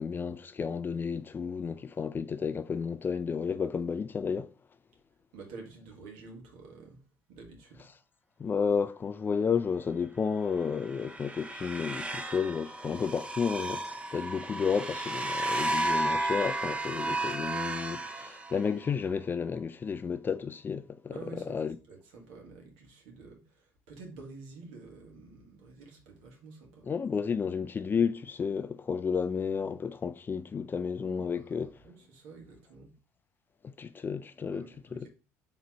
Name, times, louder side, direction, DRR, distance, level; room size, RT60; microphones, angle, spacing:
voice 1, 0.0-4.5 8.4-21.8 26.9-31.7 33.6-34.7 34.9-35.1, left 6 dB, 30° left, 0.3 m, -32 dB
voice 2, 5.3-7.0 7.3-7.9 21.1-26.9 31.0-32.9 34.5-35.1, right 4 dB, 80° right, 1.4 m, -49 dB
sound 1, 10.6-18.9, right 2 dB, 15° right, 0.6 m, -33 dB
3.9 x 3.0 x 4.4 m
supercardioid pair, 85°, 7 cm